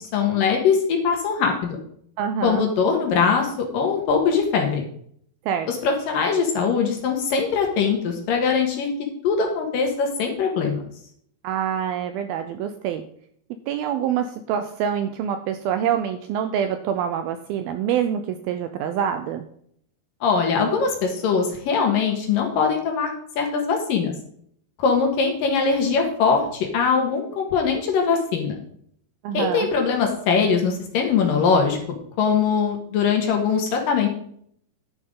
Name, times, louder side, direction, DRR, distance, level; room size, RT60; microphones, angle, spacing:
voice 1, 0.0-1.8 2.4-4.8 5.7-8.9 9.2-10.8 20.2-24.1 24.8-28.6 29.3-31.8 32.2-34.1, left 5 dB, 60° left, 2 dB, 2.9 m, -22 dB
voice 2, 2.2-2.6 5.5-5.7 11.4-13.0 13.7-19.5 29.2-29.7, right 8 dB, 80° right, 8 dB, 2.2 m, -26 dB
11.0 x 9.3 x 3.8 m, 0.64 s
omnidirectional pair, 4.9 m